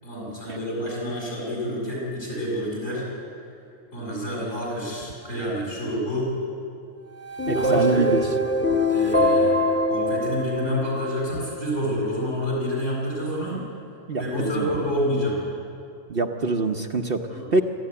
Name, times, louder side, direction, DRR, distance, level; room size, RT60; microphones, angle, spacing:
voice 1, 0.0-3.0 3.9-6.3 7.5-8.1 8.9-13.6 14.2-15.4 17.3-17.5, equal, 60° left, -4 dB, 8.3 m, -28 dB
sound 1, 7.2-11.5, left 1 dB, 10° left, 1.3 m, -23 dB
voice 2, 7.5-8.2 14.1-14.7 16.1-17.6, right 3 dB, 45° right, 4 dB, 1.0 m, -25 dB
27.0 x 13.0 x 9.6 m, 2.6 s
omnidirectional pair, 1.4 m